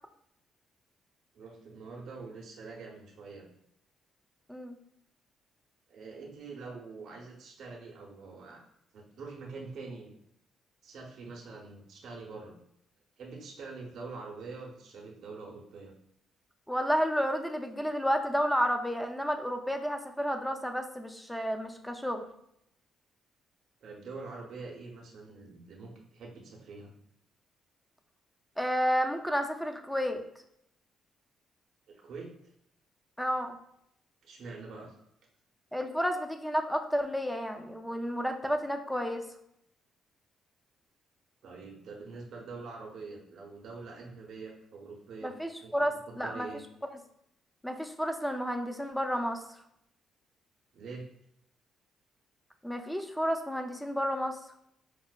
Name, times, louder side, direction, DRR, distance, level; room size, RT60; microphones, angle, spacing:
voice 1, 1.3-3.5 5.9-8.6 8.9-10.1 10.8-12.5 13.2-15.9 23.8-26.9 31.9-32.3 34.2-35.0 41.4-45.3 45.6-46.6 50.7-51.1, right 4 dB, 65° right, -2 dB, 0.6 m, -45 dB
voice 2, 16.7-22.3 28.6-30.2 33.2-33.6 35.7-39.3 45.2-46.5 47.6-49.6 52.6-54.4, equal, 5° left, 5 dB, 0.4 m, -31 dB
4.9 x 2.1 x 2.2 m, 0.75 s
cardioid pair, 90°, 0 cm